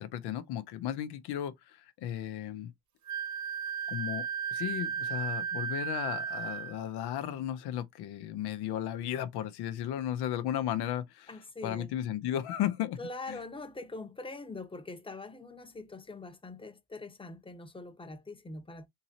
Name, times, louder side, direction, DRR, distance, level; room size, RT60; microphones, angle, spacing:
voice 1, 0.0-2.7 3.9-11.3 11.6-13.0 13.3-13.4, left 11 dB, 90° left, 0.6 m, -35 dB
Wind instrument woodwind instrument, 3.1-6.8, right 7 dB, 50° right, 0.6 m, -35 dB
voice 2, 11.3-11.9 13.0-18.9, left 2 dB, 15° left, 0.8 m, -43 dB
3.7 x 2.9 x 2.7 m
supercardioid pair, 60°, 38 cm